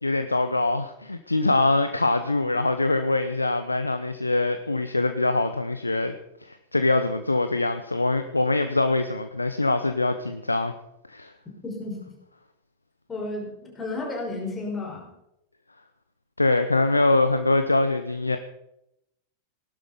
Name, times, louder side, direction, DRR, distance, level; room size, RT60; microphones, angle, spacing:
voice 1, 0.0-6.2 6.4-10.7 11.1-11.3 16.4-18.4, left 2 dB, 80° left, 9 dB, 0.8 m, -23 dB
voice 2, 11.6-12.0 13.1-15.1, left 2 dB, 15° left, -1 dB, 5.9 m, -32 dB
18.5 x 12.0 x 5.2 m, 0.84 s
figure-of-eight pair, 90°, 0 cm